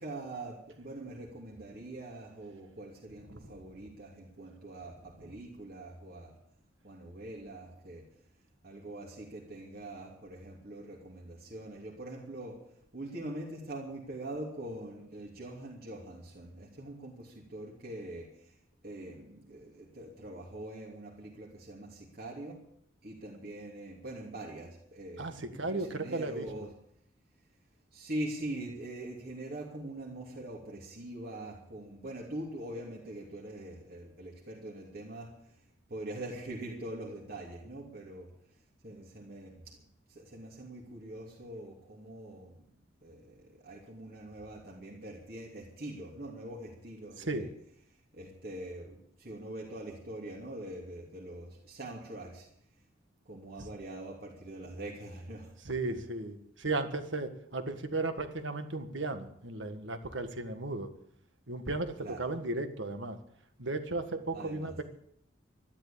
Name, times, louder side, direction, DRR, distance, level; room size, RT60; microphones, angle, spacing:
voice 1, 0.0-6.3 6.8-8.1 8.6-12.6 12.9-18.5 18.8-22.6 23.0-26.7 27.9-35.5 35.9-38.3 38.8-39.8 40.1-47.5 48.1-52.5 53.2-55.5 55.9-56.0 62.0-62.3 64.3-64.7, right 1 dB, 50° right, -3 dB, 3.0 m, -43 dB
voice 2, 25.6-26.5 47.2-47.5 55.6-60.9 61.5-63.2 63.6-64.8, right 2 dB, 65° right, 8 dB, 1.7 m, -35 dB
13.5 x 12.0 x 8.7 m, 0.71 s
head